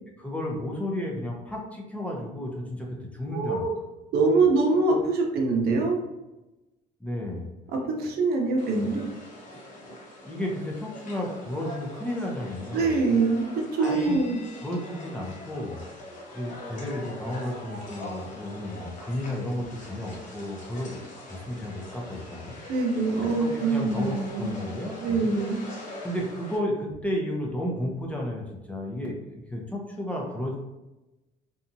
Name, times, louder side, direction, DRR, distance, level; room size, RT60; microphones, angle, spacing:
voice 1, 0.2-2.9 3.1-3.7 7.0-7.5 10.2-12.9 13.8-14.2 14.6-15.8 16.3-21.0 21.3-22.6 23.2-25.4 26.0-30.5, left 1 dB, 10° left, -2 dB, 0.6 m, -33 dB
voice 2, 3.3-3.7 4.1-6.0 7.7-9.0 12.7-14.4 22.7-24.5 25.0-25.6, right 3 dB, 70° right, 1 dB, 0.6 m, -24 dB
sound 1, 8.6-26.6, left 1 dB, 50° left, 0.9 m, -43 dB
2.8 x 2.3 x 2.6 m, 1.0 s
cardioid pair, 110°, 17 cm